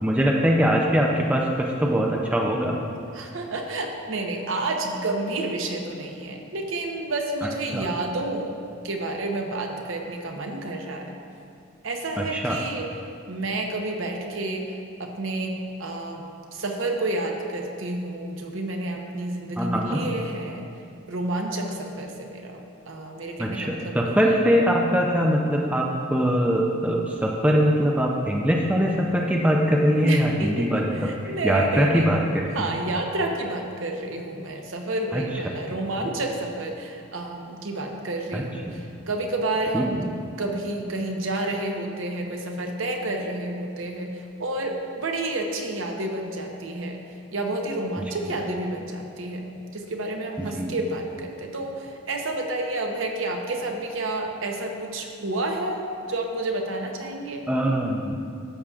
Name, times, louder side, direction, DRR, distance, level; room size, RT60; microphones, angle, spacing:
voice 1, 0.0-2.8 7.7-7.8 12.2-12.6 19.6-20.1 23.4-30.9 31.4-32.4 35.1-35.2 36.0-36.1 38.3-38.8 39.7-39.8 50.4-50.7 57.5-58.2, equal, 5° right, -1 dB, 0.4 m, -22 dB
voice 2, 3.1-8.5 8.8-11.2 11.8-12.9 13.3-14.7 15.0-16.2 16.5-20.7 21.1-24.4 29.9-32.1 32.5-40.1 40.4-47.0 47.3-55.8 56.1-57.5, right 2 dB, 65° right, 2 dB, 0.8 m, -30 dB
12.5 x 7.0 x 2.4 m, 2.4 s
head